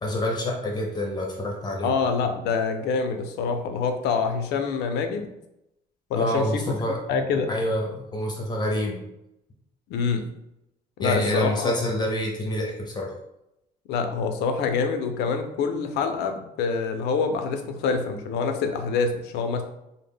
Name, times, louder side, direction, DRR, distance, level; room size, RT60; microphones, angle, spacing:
voice 1, 0.0-1.9 6.1-7.0 7.5-9.0 11.0-13.1, left 1 dB, 25° left, 0 dB, 0.5 m, -27 dB
voice 2, 1.8-5.3 6.1-6.6 7.1-7.5 9.9-10.3 11.0-11.7 13.9-19.6, left 5 dB, 80° left, 6 dB, 0.4 m, -26 dB
2.0 x 2.0 x 3.4 m, 0.85 s
cardioid pair, 110°, 17 cm